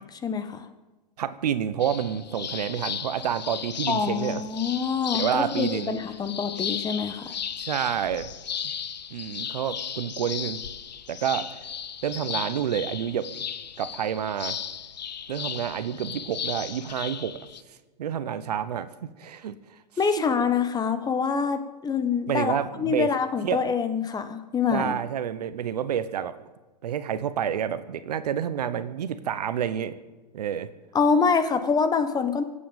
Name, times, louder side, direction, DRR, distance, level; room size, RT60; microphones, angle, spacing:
voice 1, 0.1-0.7 3.9-7.4 20.0-24.9 30.9-32.4, left 5 dB, 20° left, 9 dB, 1.3 m, -25 dB
voice 2, 1.2-4.4 5.1-5.9 7.6-8.3 9.1-10.6 11.1-11.7 12.0-13.3 13.8-14.6 15.3-17.4 18.0-19.6 22.3-23.1 23.4-23.6 24.7-26.5 26.8-29.9 30.3-30.7, right 9 dB, 70° right, 13 dB, 1.1 m, -29 dB
sound 1, 1.8-17.6, left 8 dB, 80° left, 0.9 m, -35 dB
25.0 x 8.7 x 5.2 m, 1.2 s
hypercardioid pair, 110°, 21 cm